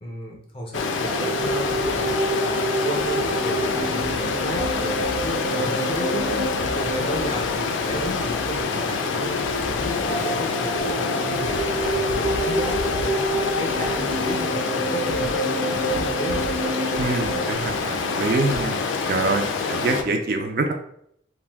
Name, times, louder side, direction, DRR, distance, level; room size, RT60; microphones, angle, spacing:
voice 1, 0.0-9.4 9.7-15.4 15.7-16.5, equal, 30° left, 0 dB, 0.5 m, -33 dB
Stream, 0.7-20.0, left 4 dB, 85° left, 0.3 m, -26 dB
sound 1, 1.0-8.1 9.0-17.5, right 2 dB, 85° right, 0.9 m, -28 dB
voice 2, 17.0-18.8 19.1-20.7, right 3 dB, 50° right, 4 dB, 0.3 m, -25 dB
2.5 x 2.1 x 3.4 m, 0.69 s
head